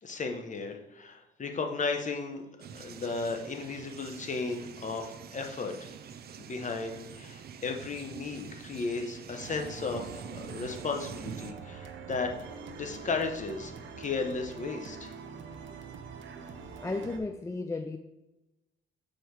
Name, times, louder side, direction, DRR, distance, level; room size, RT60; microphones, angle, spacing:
voice 1, 0.0-2.4 2.7-5.9 6.4-12.3 12.7-15.1, left 4 dB, 40° left, 4 dB, 1.1 m, -35 dB
sound 1, 2.6-11.5, right 7 dB, 50° right, 0.6 m, -46 dB
sound 2, 9.4-17.2, right 5 dB, 70° right, 0.9 m, -45 dB
voice 2, 16.8-18.0, left 3 dB, 15° left, 7 dB, 0.4 m, -34 dB
6.6 x 4.5 x 4.7 m, 0.97 s
cardioid pair, 90°, 20 cm